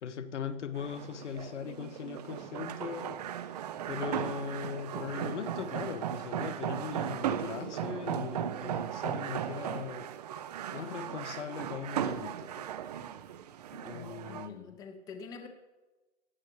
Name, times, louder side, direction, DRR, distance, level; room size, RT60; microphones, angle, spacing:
voice 1, 0.0-3.2 3.9-10.1 10.7-12.7 13.7-14.8, left 7 dB, 80° left, 0.8 m, -39 dB
sound 1, 0.8-14.5, right 10 dB, 35° right, 0.4 m, -37 dB
voice 2, 13.9-15.5, left 5 dB, 10° left, 0.6 m, -46 dB
16.0 x 9.3 x 3.1 m
hypercardioid pair, 135°, 35 cm